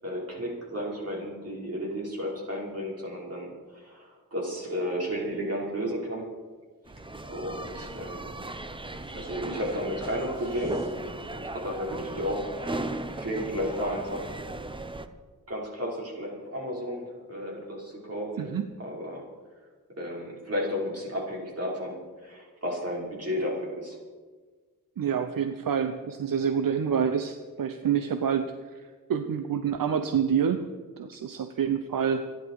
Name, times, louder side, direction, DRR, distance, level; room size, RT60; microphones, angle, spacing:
voice 1, 0.0-6.3 7.3-8.3 9.1-10.9 11.3-14.4 15.5-19.3 20.0-24.0, equal, 45° right, -3 dB, 5.3 m, -33 dB
sound 1, 6.9-15.1, right 2 dB, 15° right, 0.8 m, -37 dB
voice 2, 18.4-18.7 25.0-28.5 28.7-30.7 31.0-32.2, right 7 dB, 75° right, 8 dB, 0.9 m, -27 dB
26.5 x 10.5 x 4.8 m, 1.4 s
wide cardioid pair, 125°, 34 cm